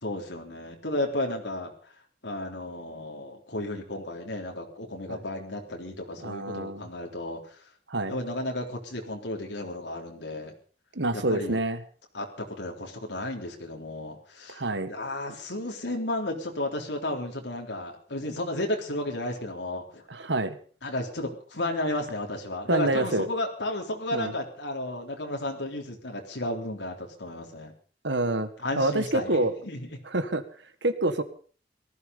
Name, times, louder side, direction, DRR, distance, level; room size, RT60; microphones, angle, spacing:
voice 1, 0.0-1.9 2.2-7.7 8.1-10.5 11.1-11.6 12.1-14.6 14.9-20.0 20.8-27.7 28.6-30.0, left 1 dB, 85° left, 1 dB, 3.7 m, -33 dB
voice 2, 6.2-6.9 7.9-8.2 11.0-11.8 14.5-14.9 20.1-20.6 22.7-23.3 24.1-24.3 28.0-28.5 28.8-29.5 30.1-30.4 30.8-31.2, right 2 dB, 85° right, 11 dB, 1.8 m, -27 dB
18.5 x 14.0 x 5.4 m, 0.42 s
head